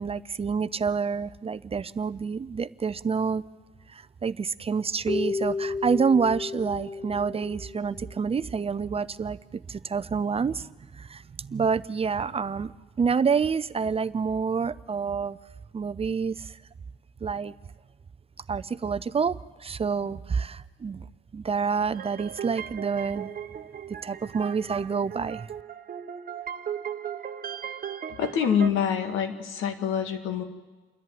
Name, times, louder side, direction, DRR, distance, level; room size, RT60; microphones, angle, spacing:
voice 1, 0.0-3.4 3.9-12.7 13.0-15.4 15.7-16.6 17.2-17.5 18.5-21.1 21.3-23.3 24.0-25.5, right 5 dB, 30° right, 16 dB, 0.5 m, -28 dB
Keyboard (musical), 5.1-8.3, left 4 dB, 25° left, 0.7 m, -32 dB
sound 1, 21.9-28.7, right 8 dB, 45° right, 1.0 m, -37 dB
voice 2, 28.2-30.4, left 7 dB, 85° left, 6 dB, 1.9 m, -26 dB
28.5 x 11.0 x 9.3 m, 1.3 s
cardioid pair, 90°, 20 cm